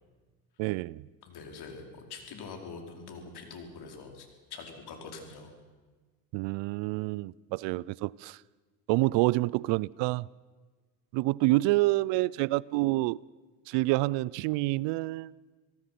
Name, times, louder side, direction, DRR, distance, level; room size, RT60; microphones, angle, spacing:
voice 1, 0.6-1.0 6.3-8.4 8.9-10.3 11.1-13.2 13.7-15.3, right 20 dB, 70° right, 24 dB, 0.6 m, -27 dB
voice 2, 1.3-5.5, left 4 dB, 55° left, 3 dB, 4.8 m, -44 dB
27.0 x 18.0 x 6.0 m, 1.3 s
supercardioid pair, 80°, 46 cm